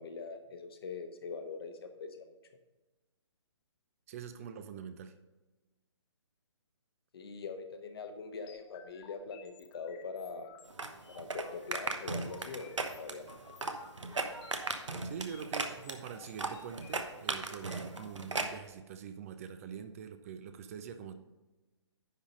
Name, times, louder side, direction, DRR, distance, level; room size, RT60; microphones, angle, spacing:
voice 1, 0.0-2.3 7.1-10.5 11.1-13.4, left 4 dB, 55° left, 6 dB, 1.1 m, -43 dB
voice 2, 4.1-5.2 15.0-21.1, right 7 dB, 30° right, 10 dB, 0.5 m, -44 dB
sound 1, 8.5-18.1, left 8 dB, 20° left, 0.7 m, -57 dB
sound 2, 10.7-18.6, right 3 dB, 80° right, 1.0 m, -37 dB
10.5 x 3.9 x 5.1 m, 1.1 s
figure-of-eight pair, 135°, 15 cm